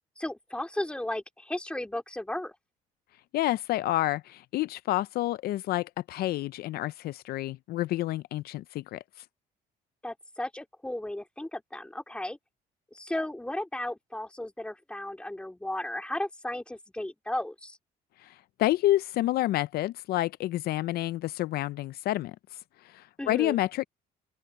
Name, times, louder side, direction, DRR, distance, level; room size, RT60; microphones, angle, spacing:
voice 1, 0.2-2.5 10.0-12.4 12.9-17.8 23.2-23.6, left 1 dB, 5° left, 2.3 m, -35 dB
voice 2, 3.3-9.2 18.2-23.8, left 15 dB, 65° left, 0.4 m, -29 dB
open air
cardioid pair, 110°, 17 cm